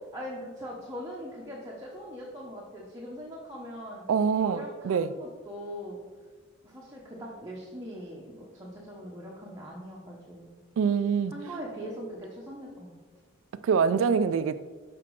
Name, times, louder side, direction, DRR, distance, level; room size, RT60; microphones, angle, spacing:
voice 1, 0.1-4.0 4.4-6.0 6.6-10.5 11.3-12.9, equal, 15° right, -4 dB, 0.8 m, -41 dB
voice 2, 4.1-5.1 10.8-11.3 13.6-14.6, right 6 dB, 70° right, 12 dB, 0.3 m, -25 dB
5.9 x 4.9 x 4.6 m, 1.4 s
head